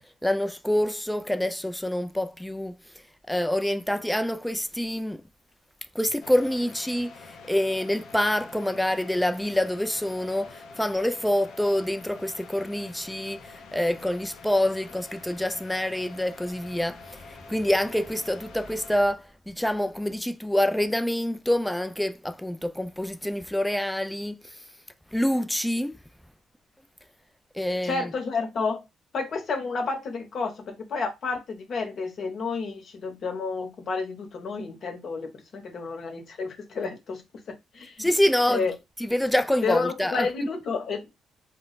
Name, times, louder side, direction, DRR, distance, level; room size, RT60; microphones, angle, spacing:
voice 1, 0.2-2.8 3.3-5.2 5.9-24.6 25.1-26.0 27.5-28.1 38.0-38.6 39.0-40.5, left 1 dB, 5° left, 0.3 m, -26 dB
sound 1, 6.2-19.0, left 4 dB, 75° left, 0.5 m, -47 dB
voice 2, 27.8-28.8 29.1-37.2 37.5-38.1 38.5-38.7 39.6-41.1, left 4 dB, 55° left, 0.9 m, -31 dB
2.2 x 2.1 x 3.9 m
cardioid pair, 90°, 0 cm